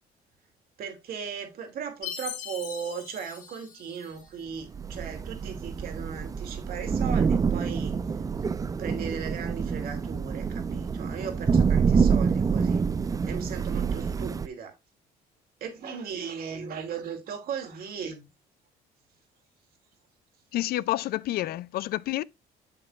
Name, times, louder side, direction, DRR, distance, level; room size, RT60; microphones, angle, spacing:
voice 1, 0.8-7.9 8.8-12.8 13.3-14.8 15.6-18.2, right 6 dB, 60° right, 2.6 m, -37 dB
Chime, 2.0-4.5, left 9 dB, 50° left, 2.7 m, -40 dB
Thunder / Rain, 4.7-14.5, right 6 dB, 20° right, 0.4 m, -27 dB
voice 2, 20.5-22.2, left 15 dB, 65° left, 0.4 m, -29 dB
7.5 x 7.3 x 2.4 m
cardioid pair, 110°, 17 cm